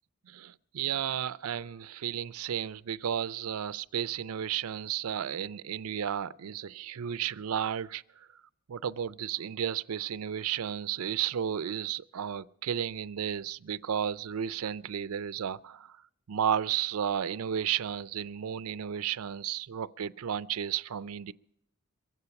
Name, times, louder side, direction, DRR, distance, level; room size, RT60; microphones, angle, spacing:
voice 1, 0.3-8.3 8.7-16.0 16.3-21.3, right 9 dB, 80° right, 0.4 m, -33 dB
23.0 x 8.2 x 5.7 m
head